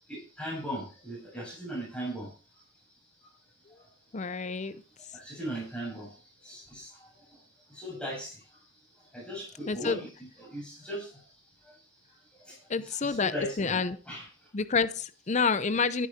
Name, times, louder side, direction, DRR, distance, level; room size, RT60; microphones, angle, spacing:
voice 1, 0.1-2.3 4.2-4.4 5.1-6.2 6.4-7.1 7.7-8.4 9.1-10.1 10.4-11.1 12.5-14.3, equal, 5° left, -4 dB, 6.9 m, -38 dB
voice 2, 4.1-4.7 9.7-10.0 12.7-14.0 14.5-16.1, left 4 dB, 35° left, 14 dB, 0.6 m, -28 dB
13.0 x 10.5 x 4.3 m, 0.36 s
head